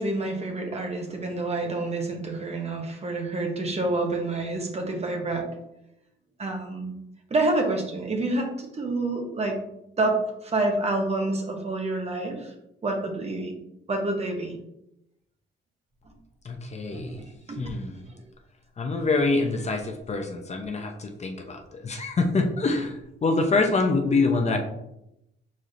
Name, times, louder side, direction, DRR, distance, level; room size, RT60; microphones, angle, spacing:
voice 1, 0.0-5.5 6.4-6.9 7.3-9.6 10.0-12.5 12.8-13.5 13.9-14.5 16.9-17.6, right 2 dB, 30° right, 3 dB, 1.0 m, -28 dB
voice 2, 16.4-17.2 17.6-18.0 18.8-24.6, left 3 dB, 35° left, 4 dB, 0.7 m, -25 dB
4.7 x 4.3 x 2.5 m, 0.83 s
cardioid pair, 90°, 20 cm